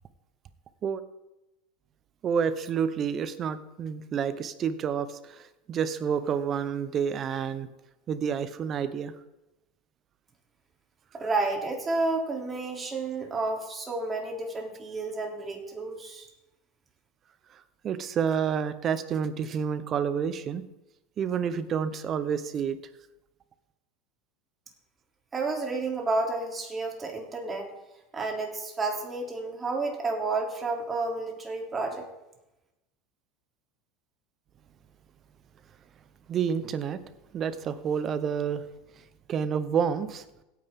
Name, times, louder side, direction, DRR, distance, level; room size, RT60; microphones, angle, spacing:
voice 1, 2.2-7.7 8.1-9.1 17.8-20.7 21.2-22.8 36.3-37.0 37.3-38.6 39.3-40.2, right 7 dB, 40° right, 13 dB, 1.0 m, -29 dB
voice 2, 11.1-16.3 25.3-27.7 28.1-32.0, right 3 dB, 25° right, 1 dB, 3.3 m, -31 dB
16.5 x 9.6 x 3.8 m, 0.97 s
hypercardioid pair, 90°, 0 cm